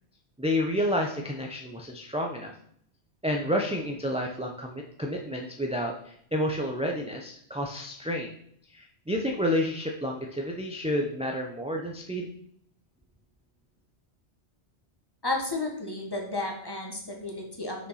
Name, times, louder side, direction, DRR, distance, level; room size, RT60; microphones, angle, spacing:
voice 1, 0.4-2.5 3.2-8.3 8.7-12.3, equal, 5° right, 0 dB, 0.6 m, -30 dB
voice 2, 15.2-17.9, left 2 dB, 20° left, 0 dB, 1.6 m, -32 dB
6.7 x 5.2 x 5.7 m, 0.66 s
omnidirectional pair, 1.2 m